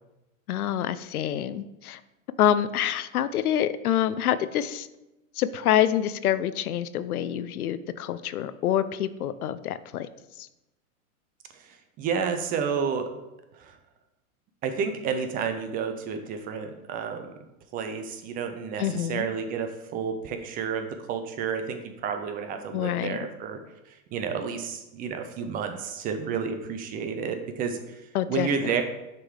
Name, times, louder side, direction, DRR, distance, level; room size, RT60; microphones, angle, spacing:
voice 1, 0.5-2.0 2.4-4.9 5.4-10.1 10.4-10.5 18.8-19.3 22.7-23.2 28.1-28.8, left 11 dB, 85° left, 14 dB, 0.6 m, -26 dB
voice 2, 11.5-13.1 13.5-13.8 14.6-17.3 17.7-23.6 23.9-28.8, right 6 dB, 20° right, 6 dB, 0.4 m, -31 dB
6.6 x 3.7 x 4.7 m, 0.96 s
hypercardioid pair, 110°, 43 cm